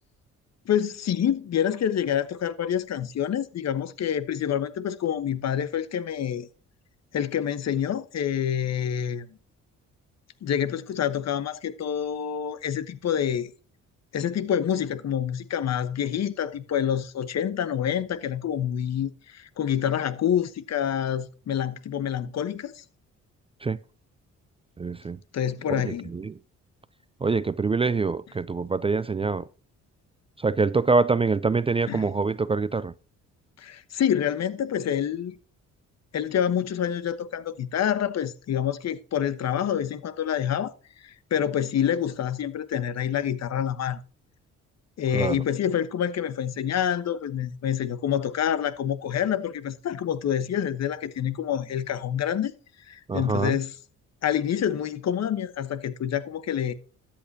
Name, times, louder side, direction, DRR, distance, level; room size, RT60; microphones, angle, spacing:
voice 1, 0.6-6.5 7.1-9.3 10.4-13.5 14.1-22.8 25.3-26.1 31.9-32.1 33.6-35.3 36.1-40.7 41.0-44.0 45.0-52.5 52.9-53.7 54.2-56.7, left 9 dB, 60° left, 1.2 m, -27 dB
voice 2, 24.8-25.2 25.7-26.3 27.2-29.4 30.4-32.9 45.1-45.4 53.1-53.6, right 4 dB, 20° right, 0.4 m, -25 dB
13.5 x 8.7 x 2.8 m
cardioid pair, 90°, 30 cm